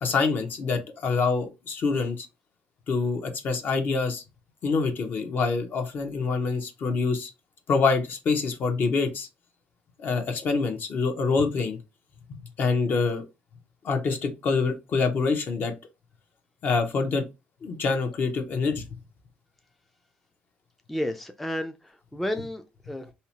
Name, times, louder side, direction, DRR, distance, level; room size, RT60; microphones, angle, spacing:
voice 1, 0.0-2.3 2.9-4.2 4.6-7.3 7.7-9.3 10.0-11.8 12.6-13.3 13.8-15.7 16.6-17.2 17.6-18.9, left 4 dB, 55° left, 0.7 m, -26 dB
voice 2, 20.9-23.1, left 1 dB, 5° left, 0.3 m, -32 dB
2.7 x 2.1 x 2.8 m
cardioid pair, 105°, 4 cm